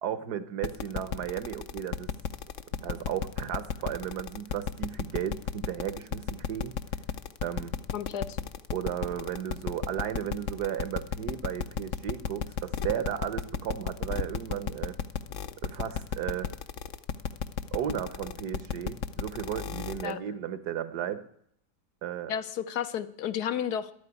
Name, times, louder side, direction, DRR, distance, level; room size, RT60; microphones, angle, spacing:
voice 1, 0.0-2.1 2.8-6.7 7.4-7.7 8.7-15.0 15.6-16.5 17.7-21.2 22.0-22.3, right 9 dB, 75° right, 13 dB, 1.6 m, -34 dB
sound 1, 0.6-20.1, left 7 dB, 60° left, 0.9 m, -33 dB
voice 2, 7.9-8.4 20.0-20.2 22.3-23.9, left 9 dB, 75° left, 12 dB, 1.4 m, -32 dB
11.5 x 9.0 x 9.5 m, 0.68 s
omnidirectional pair, 1.7 m